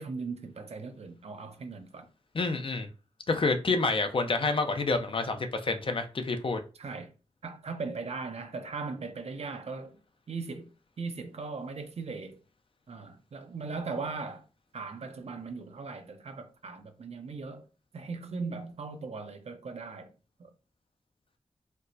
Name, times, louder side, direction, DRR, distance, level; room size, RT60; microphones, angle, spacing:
voice 1, 0.0-2.1 2.4-2.5 6.8-7.1 7.4-10.0 10.3-10.7 11.0-12.4 12.9-14.4 14.7-17.7 17.9-20.1 20.4-20.5, right 4 dB, 65° right, 0.5 m, -38 dB
voice 2, 2.3-2.9 3.3-6.6, left 3 dB, 50° left, 0.5 m, -28 dB
4.3 x 2.0 x 2.6 m
wide cardioid pair, 75°, 11 cm